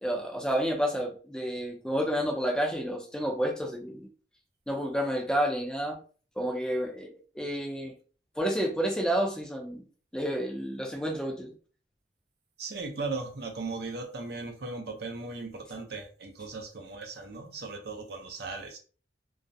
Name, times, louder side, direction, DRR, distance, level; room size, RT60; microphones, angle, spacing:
voice 1, 0.0-4.1 4.7-6.0 6.4-7.9 8.4-9.8 10.1-11.5, equal, 5° left, 0.4 m, -30 dB
voice 2, 12.6-18.8, right 3 dB, 60° right, 0.6 m, -37 dB
2.4 x 2.0 x 2.6 m
head